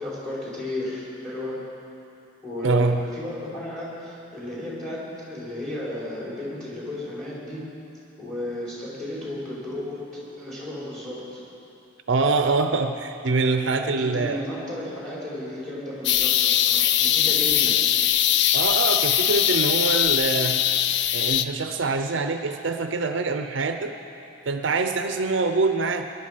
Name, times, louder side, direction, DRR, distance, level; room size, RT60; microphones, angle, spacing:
voice 1, 0.0-1.6 2.4-7.7 8.2-11.4 13.6-17.8, left 1 dB, 5° left, -7 dB, 4.3 m, -34 dB
voice 2, 2.6-3.0 12.1-14.4 18.5-20.6 21.1-23.9 24.5-26.1, right 3 dB, 65° right, 7 dB, 0.6 m, -24 dB
sound 1, 16.0-21.4, left 11 dB, 55° left, 0.4 m, -21 dB
21.0 x 11.5 x 5.1 m, 2.7 s
head